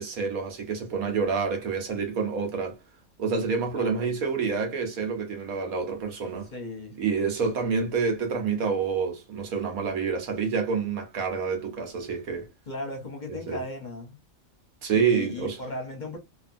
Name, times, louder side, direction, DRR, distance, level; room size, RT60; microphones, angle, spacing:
voice 1, 0.0-2.8 3.2-6.5 7.0-12.5 13.3-13.6 14.8-15.6, right 5 dB, 85° right, 1.5 m, -28 dB
voice 2, 3.7-4.1 6.5-7.0 12.7-14.2 14.9-16.2, left 2 dB, 40° left, 0.8 m, -36 dB
2.8 x 2.7 x 2.5 m
omnidirectional pair, 1.4 m